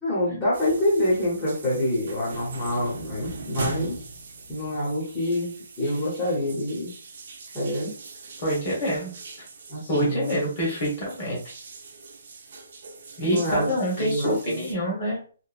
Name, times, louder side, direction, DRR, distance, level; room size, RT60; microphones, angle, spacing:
voice 1, 0.0-4.0 4.5-6.9 7.5-8.0 9.7-10.3 13.2-14.7, left 1 dB, 10° left, -10 dB, 0.9 m, -27 dB
sound 1, 0.5-14.7, right 3 dB, 50° right, 0.5 m, -41 dB
voice 2, 8.4-9.1 9.9-11.4 13.2-15.2, equal, 35° left, -3 dB, 1.3 m, -26 dB
2.9 x 2.1 x 2.4 m, 0.40 s
hypercardioid pair, 165°, 0 cm